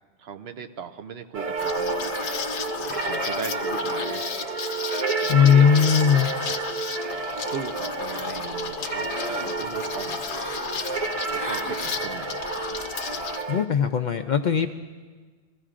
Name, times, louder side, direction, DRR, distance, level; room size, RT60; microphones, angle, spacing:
voice 1, 0.2-2.0 2.9-4.3 5.2-5.7 6.5-6.7 7.5-10.2 11.3-12.4, right 6 dB, 65° right, 8 dB, 0.9 m, -38 dB
sound 1, 1.3-13.7, right 3 dB, 40° right, 0.6 m, -30 dB
Liquid, 1.6-13.4, left 6 dB, 75° left, 1.0 m, -34 dB
voice 2, 5.3-6.3 13.5-14.7, left 7 dB, 60° left, 6 dB, 0.5 m, -18 dB
sound 2, 8.1-8.6 9.0-9.5 10.3-10.7 11.3-11.8 12.5-12.9, equal, 15° right, 1.0 m, -38 dB
22.0 x 15.5 x 2.5 m, 1.4 s
omnidirectional pair, 1.2 m